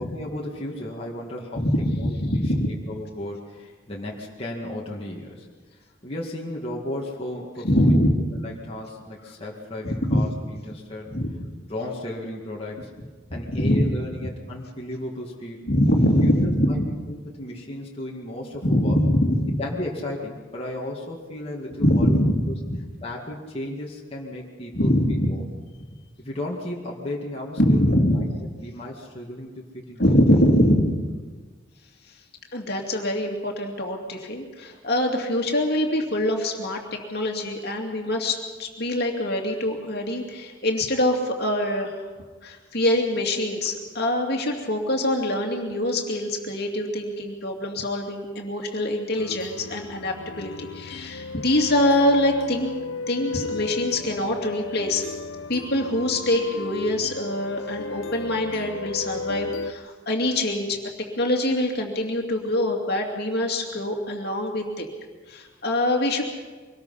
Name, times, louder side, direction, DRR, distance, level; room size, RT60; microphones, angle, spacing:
voice 1, 0.0-1.7 2.0-5.5 6.0-8.0 8.3-11.1 11.7-12.9 13.3-15.6 16.2-16.8 17.1-19.0 19.6-22.2 23.0-25.4 26.2-28.3 28.6-30.0, left 1 dB, 30° left, -3 dB, 2.1 m, -34 dB
voice 2, 1.6-2.7 7.6-8.2 9.8-10.3 11.1-11.3 13.5-13.9 15.7-16.9 18.6-19.6 21.8-22.8 24.7-25.4 27.6-28.2 30.0-31.0 32.5-36.8 37.1-42.0 42.4-52.7 53.1-55.0 55.5-60.8 61.2-64.9 65.3-66.2, left 1 dB, 55° left, 2 dB, 2.5 m, -23 dB
sound 1, 49.1-59.7, left 3 dB, 80° left, 0.7 m, -35 dB
24.0 x 19.5 x 5.7 m, 1.4 s
head